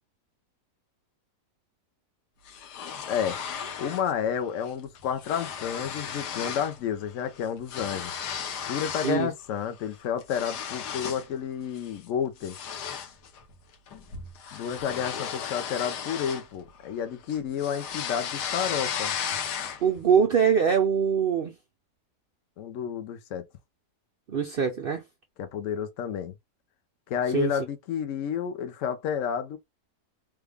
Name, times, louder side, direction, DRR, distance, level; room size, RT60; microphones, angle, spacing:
sound 1, 2.5-4.1 4.4-4.7 5.0-6.8 7.1-9.2 9.7-11.3 11.7-12.0 12.4-17.0 17.3-20.0, left 7 dB, 85° left, 1.4 m, -35 dB
voice 1, 3.1-3.4 3.8-8.1 8.7-12.6 14.5-19.1 22.6-23.4 25.4-26.3 27.1-29.6, left 8 dB, 65° left, 0.8 m, -30 dB
voice 2, 19.8-21.5 24.3-25.0 27.3-27.5, right 7 dB, 90° right, 0.4 m, -23 dB
3.4 x 2.2 x 3.3 m
omnidirectional pair, 1.7 m